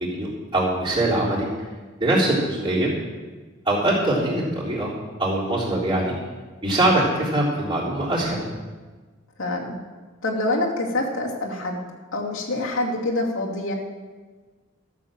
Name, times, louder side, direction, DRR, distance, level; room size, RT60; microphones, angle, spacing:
voice 1, 0.0-1.5 2.0-2.9 3.7-4.9 5.2-6.1 6.6-8.4, right 1 dB, 25° right, -6 dB, 3.6 m, -22 dB
voice 2, 9.4-9.8 10.2-11.8 12.1-13.7, left 2 dB, 90° left, -2 dB, 2.5 m, -26 dB
13.5 x 7.2 x 7.4 m, 1.3 s
head